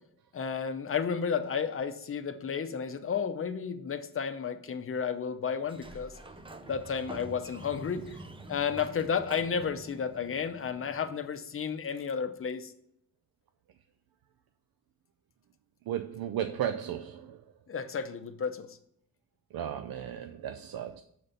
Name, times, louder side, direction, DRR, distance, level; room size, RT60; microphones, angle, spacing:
voice 1, 0.3-6.1 6.6-8.2 8.5-12.7 17.7-18.8, left 6 dB, 35° left, 0.6 m, -32 dB
Sliding door, 5.6-11.3, right 2 dB, 15° right, 0.5 m, -47 dB
voice 2, 15.9-17.4 19.5-21.0, right 10 dB, 75° right, 0.5 m, -35 dB
6.6 x 4.2 x 6.5 m
wide cardioid pair, 170°, 37 cm